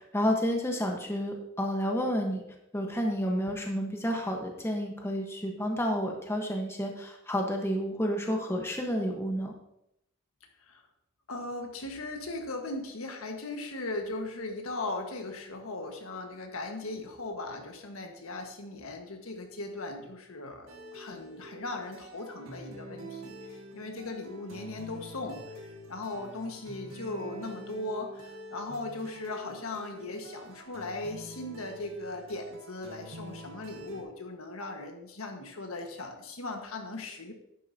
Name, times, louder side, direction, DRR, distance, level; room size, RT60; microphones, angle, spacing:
voice 1, 0.0-2.4 2.7-9.5, equal, 10° left, 1 dB, 1.1 m, -30 dB
voice 2, 11.3-25.4 25.9-37.3, left 2 dB, 85° left, 3 dB, 1.5 m, -38 dB
sound 1, 20.7-34.0, right 1 dB, 80° right, 1.5 m, -47 dB
11.0 x 9.3 x 2.8 m, 0.81 s
head